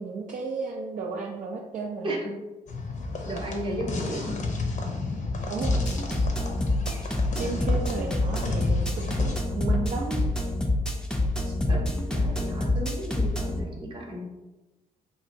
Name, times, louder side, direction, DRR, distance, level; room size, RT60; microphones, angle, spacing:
voice 1, 0.0-2.1 5.5-5.9 7.4-10.3 11.4-11.6, right 4 dB, 60° right, -1 dB, 0.4 m, -33 dB
sound 1, 2.7-9.4, left 3 dB, 55° left, 0.6 m, -33 dB
voice 2, 3.2-4.4 7.4-7.5 11.7-14.3, right 1 dB, 35° right, -1 dB, 0.8 m, -34 dB
sound 2, 5.6-13.6, left 1 dB, 5° left, 0.5 m, -26 dB
2.9 x 2.5 x 2.6 m, 1.1 s
cardioid pair, 70°, 16 cm